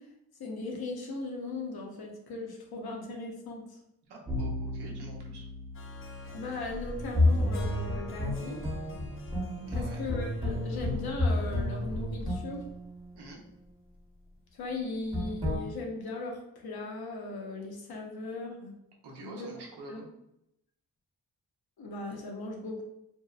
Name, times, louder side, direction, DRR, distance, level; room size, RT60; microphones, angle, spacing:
voice 1, 0.4-3.8 6.3-8.6 9.7-12.6 14.5-18.8 19.2-19.5 19.9-20.0 21.8-22.8, left 2 dB, 65° left, 1 dB, 0.7 m, -38 dB
voice 2, 4.1-5.4 9.7-10.0 13.1-13.4 19.0-20.1, right 2 dB, 85° right, 0 dB, 0.7 m, -47 dB
sound 1, 4.3-13.7 15.1-15.6, left 1 dB, 10° right, 0.8 m, -32 dB
Harp, 5.7-12.9, left 2 dB, 35° left, 0.4 m, -50 dB
2.7 x 2.0 x 2.3 m, 0.81 s
cardioid pair, 55°, 39 cm